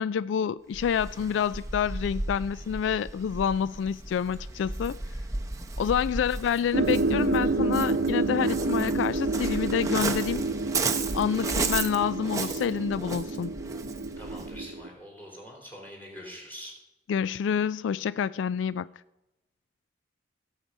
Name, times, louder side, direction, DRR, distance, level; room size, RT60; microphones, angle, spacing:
voice 1, 0.0-5.0 5.8-10.4 11.1-13.5 17.1-18.9, left 7 dB, 85° left, 0.3 m, -28 dB
Waves surf, 0.7-14.6, right 3 dB, 15° right, 0.7 m, -35 dB
sound 1, 6.7-14.9, right 3 dB, 70° right, 0.7 m, -29 dB
voice 2, 14.2-16.7, equal, 10° left, 3.5 m, -44 dB
16.5 x 7.4 x 5.4 m
head